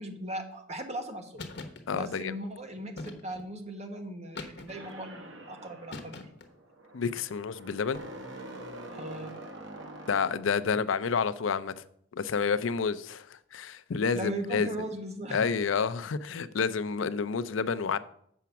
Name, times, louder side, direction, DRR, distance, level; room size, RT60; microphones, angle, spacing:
voice 1, 0.0-1.4 1.9-6.3 8.9-9.3 14.1-15.5, right 1 dB, 35° right, 1.2 m, -38 dB
sound 1, 1.4-1.8 3.0-3.5 4.3-5.0 5.9-6.5, left 3 dB, 60° left, 1.1 m, -42 dB
voice 2, 1.9-2.3 6.9-8.0 10.1-11.8 12.1-14.7 15.3-18.0, left 5 dB, 85° left, 0.5 m, -29 dB
sound 2, 4.7-10.8, right 1 dB, 80° right, 1.5 m, -45 dB
7.2 x 5.8 x 6.9 m
head